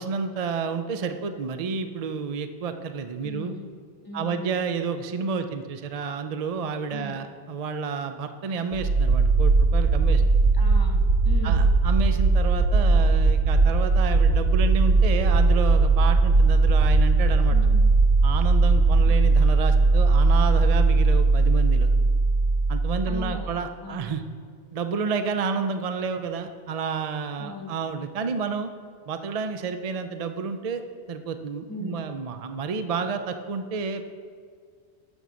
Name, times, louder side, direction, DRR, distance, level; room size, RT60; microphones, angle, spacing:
voice 1, 0.0-3.5 4.1-10.2 11.4-17.6 18.2-21.9 22.7-24.2 24.7-28.7 29.1-30.8 31.1-34.1, right 5 dB, 45° right, 8 dB, 0.5 m, -30 dB
voice 2, 3.2-3.7 4.0-4.5 6.9-7.2 10.6-11.7 17.5-17.9 19.0-19.2 23.1-23.5 23.8-24.1 27.4-27.7 31.7-32.0, left 1 dB, 20° left, 1 dB, 1.1 m, -38 dB
sound 1, 8.7-23.5, right 3 dB, 80° right, 0.9 m, -19 dB
12.5 x 5.3 x 6.2 m, 2.1 s
omnidirectional pair, 1.1 m